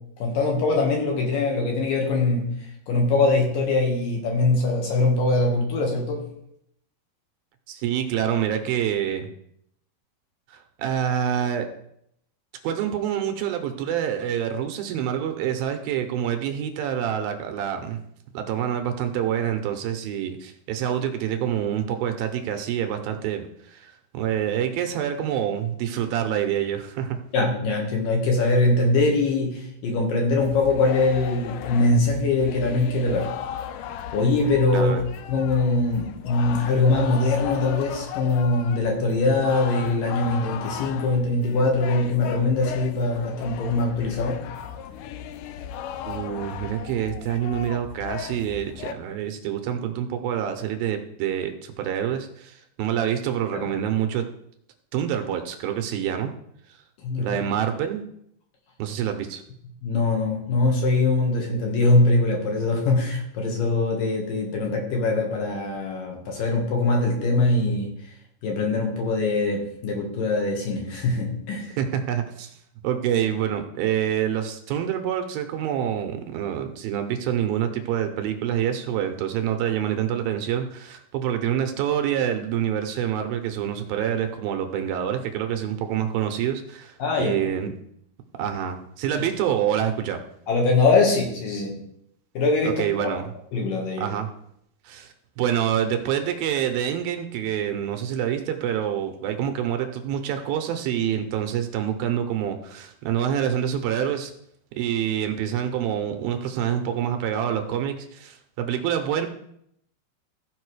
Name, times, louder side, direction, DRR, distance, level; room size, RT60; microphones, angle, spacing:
voice 1, 0.2-2.6 2.9-6.3 27.3-33.3 34.1-34.9 35.3-44.4 53.5-53.6 57.0-57.4 59.8-67.9 68.4-71.7 87.0-87.4 90.5-91.8 92.3-93.2 93.5-94.1, left 3 dB, 65° left, 0 dB, 3.2 m, -22 dB
voice 2, 7.7-9.3 10.5-11.7 12.6-18.0 18.3-27.2 34.7-35.0 46.0-54.2 54.9-56.3 57.2-58.0 58.8-59.4 71.8-72.5 72.8-87.7 88.4-90.2 92.6-93.3 94.0-94.3 94.8-104.3 104.7-109.3, right 9 dB, 80° right, 6 dB, 2.5 m, -26 dB
sound 1, 30.4-48.9, left 9 dB, 90° left, 1.8 m, -36 dB
14.5 x 5.3 x 4.8 m, 0.74 s
omnidirectional pair, 4.5 m